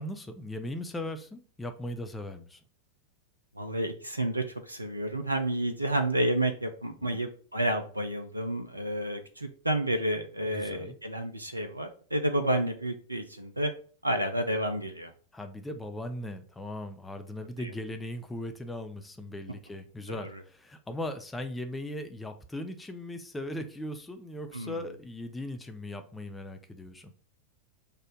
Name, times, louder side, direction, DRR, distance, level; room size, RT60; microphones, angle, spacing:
voice 1, 0.0-2.6 7.1-7.2 10.5-11.0 15.3-27.1, left 1 dB, 10° left, 7 dB, 0.6 m, -38 dB
voice 2, 3.6-13.7 14.0-15.1 17.6-17.7 20.1-20.4 24.5-24.8, right 1 dB, 85° right, 7 dB, 0.5 m, -30 dB
4.3 x 2.5 x 4.9 m, 0.42 s
figure-of-eight pair, 90°, 0 cm